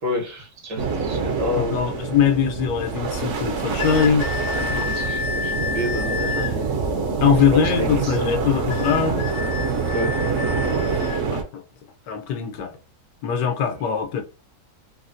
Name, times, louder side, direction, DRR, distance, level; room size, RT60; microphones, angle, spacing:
voice 1, 0.0-2.0 4.7-6.8 7.2-8.5 9.9-10.3, left 1 dB, 80° right, 1.8 m, -30 dB
sound 1, 0.8-11.4, right 4 dB, 60° right, 0.8 m, -25 dB
voice 2, 1.6-4.3 4.6-4.8 6.4-6.7 7.2-9.3 11.3-11.6 12.1-12.7 13.2-14.2, left 7 dB, 90° left, 1.3 m, -22 dB
sound 2, 3.8-6.6 8.7-11.3, left 6 dB, 65° left, 1.1 m, -30 dB
4.0 x 2.1 x 2.6 m
omnidirectional pair, 1.8 m